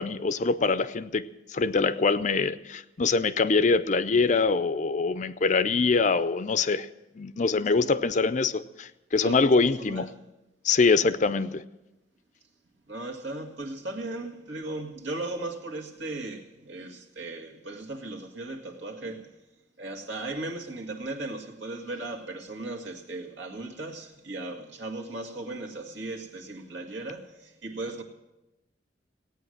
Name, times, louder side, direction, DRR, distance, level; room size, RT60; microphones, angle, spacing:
voice 1, 0.0-6.9 7.2-10.1 10.6-11.6, left 4 dB, 40° left, 14 dB, 0.5 m, -24 dB
voice 2, 9.2-10.1 12.9-19.3 19.8-28.0, right 2 dB, 75° right, 3 dB, 2.1 m, -37 dB
17.0 x 9.2 x 7.9 m, 0.98 s
head